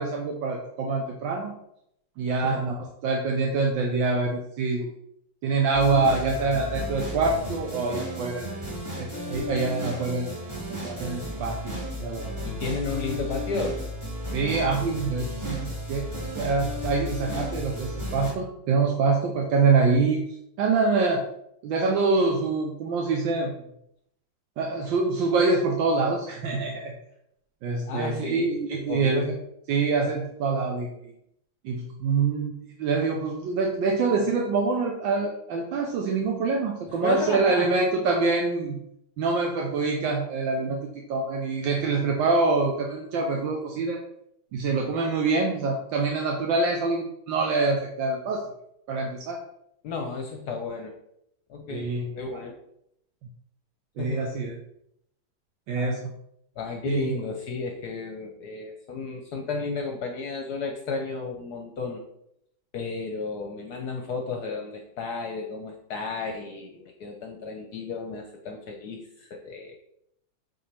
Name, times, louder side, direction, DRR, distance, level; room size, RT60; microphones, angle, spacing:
voice 1, 0.0-1.5 2.2-2.8 3.0-4.9 5.4-8.5 9.0-10.3 10.8-11.6 12.0-12.4 14.3-16.1 16.3-20.2 20.6-21.3 21.6-23.5 24.6-26.9 27.6-29.3 29.7-30.9 31.6-32.5 32.8-38.8 39.2-44.0 44.5-48.5 48.9-49.4 51.7-52.1 54.0-54.5 55.7-56.1 56.8-57.1, right 4 dB, 75° right, 1 dB, 1.4 m, -25 dB
sound 1, 5.7-18.3, left 1 dB, 10° right, 1.9 m, -34 dB
voice 2, 12.4-13.8 27.9-28.5 28.9-29.4 37.0-37.7 49.8-50.9 51.5-52.6 54.0-54.3 56.6-62.0 62.7-69.8, left 4 dB, 65° left, 3 dB, 1.1 m, -33 dB
8.1 x 3.9 x 3.3 m, 0.77 s
omnidirectional pair, 2.2 m